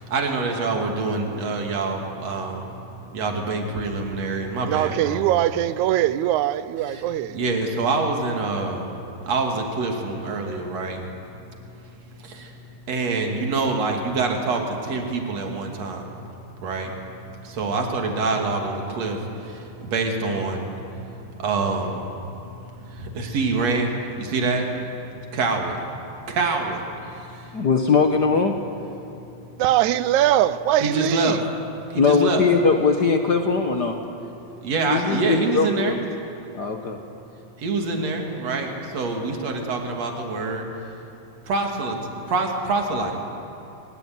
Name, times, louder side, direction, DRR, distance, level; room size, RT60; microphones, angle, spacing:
voice 1, 0.0-5.3 6.9-7.0 7.3-11.1 11.8-12.6 12.9-16.1 16.6-16.9 17.4-25.8 26.3-27.6 30.8-31.4 31.9-32.5 34.6-36.0 37.6-40.7 41.4-43.1, right 3 dB, 55° right, 2 dB, 3.6 m, -26 dB
voice 2, 4.7-7.4 29.6-31.4, right 12 dB, 75° right, 15 dB, 2.0 m, -21 dB
voice 3, 27.5-28.6 32.0-34.0 34.9-35.9 36.5-37.0, left 5 dB, 60° left, 5 dB, 1.1 m, -20 dB
22.5 x 22.0 x 9.4 m, 2.8 s
omnidirectional pair, 3.6 m